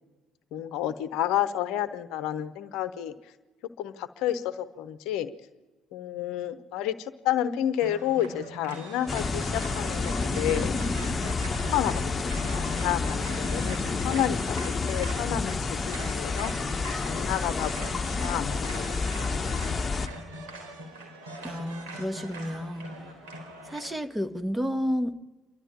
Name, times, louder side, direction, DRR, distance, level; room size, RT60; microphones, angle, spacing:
voice 1, 0.5-3.1 3.8-5.3 5.9-10.7 11.7-14.6 14.9-16.5 17.0-18.8 19.2-19.9, left 11 dB, 65° left, 12 dB, 0.9 m, -30 dB
sound 1, 7.8-23.9, right 1 dB, 75° right, 3.8 m, -42 dB
sound 2, 9.1-20.1, left 4 dB, 30° left, 1.2 m, -29 dB
voice 2, 21.4-23.1 23.6-25.2, equal, 10° right, 9 dB, 1.5 m, -31 dB
28.0 x 12.5 x 8.9 m, 1.2 s
hypercardioid pair, 50°, 0 cm